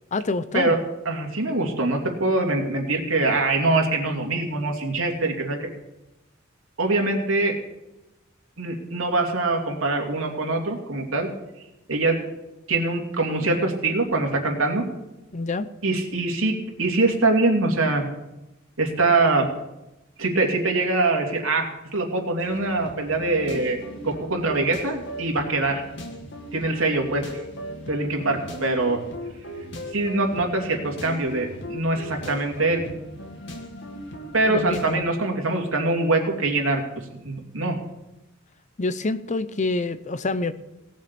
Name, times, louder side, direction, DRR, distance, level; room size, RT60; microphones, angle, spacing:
voice 1, 0.1-0.7 15.3-15.7 34.5-35.1 38.8-40.5, left 3 dB, 35° left, 14 dB, 0.7 m, -27 dB
voice 2, 1.0-5.7 6.8-7.5 8.6-11.3 11.9-12.1 12.7-14.8 15.8-16.5 16.8-18.1 18.8-19.5 20.2-21.6 21.9-23.8 24.0-25.8 26.5-27.4 27.9-29.0 29.9-32.8 34.3-36.8 37.1-37.8, right 2 dB, 90° right, 2 dB, 2.8 m, -23 dB
sound 1, 22.4-35.0, equal, 60° left, 2.1 m, -38 dB
18.0 x 7.5 x 6.9 m, 0.96 s
head